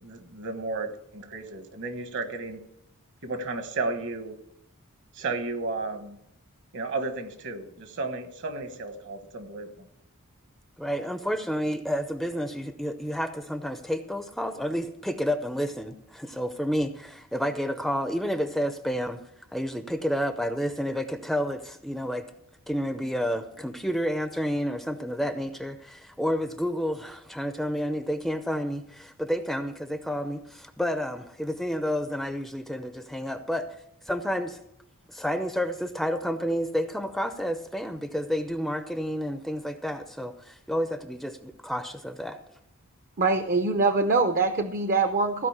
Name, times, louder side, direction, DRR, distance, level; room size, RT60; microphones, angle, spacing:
voice 1, 0.0-2.6 3.2-4.4 5.1-6.2 6.7-9.9, right 3 dB, 55° right, 8 dB, 1.3 m, -33 dB
voice 2, 10.8-19.2 19.5-22.3 22.7-33.7 34.1-34.6 35.1-42.4, equal, ahead, 8 dB, 0.5 m, -30 dB
voice 3, 43.2-45.5, right 3 dB, 40° right, 8 dB, 0.7 m, -23 dB
15.5 x 5.2 x 8.0 m, 0.76 s
head